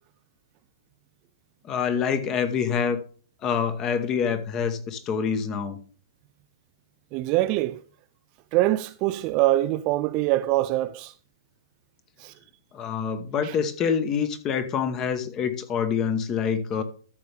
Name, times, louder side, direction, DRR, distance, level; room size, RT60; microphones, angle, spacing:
voice 1, 1.6-3.0 3.4-5.8 12.7-16.8, left 7 dB, 20° left, 1.1 m, -26 dB
voice 2, 7.1-7.8 8.5-11.1 12.2-12.3 13.4-13.6, right 16 dB, 25° right, 0.4 m, -24 dB
13.5 x 6.9 x 3.4 m
hypercardioid pair, 160°, 2 cm